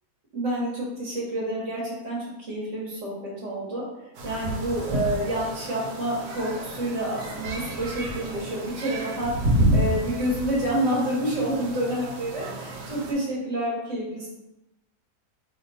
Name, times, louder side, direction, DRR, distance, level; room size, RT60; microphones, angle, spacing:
voice 1, 0.3-3.1 3.4-3.8 4.2-14.3, right 1 dB, 55° right, -5 dB, 1.2 m, -28 dB
sound 1, 4.2-13.1, right 1 dB, 90° right, 1.2 m, -30 dB
2.9 x 2.1 x 3.9 m, 0.94 s
omnidirectional pair, 1.7 m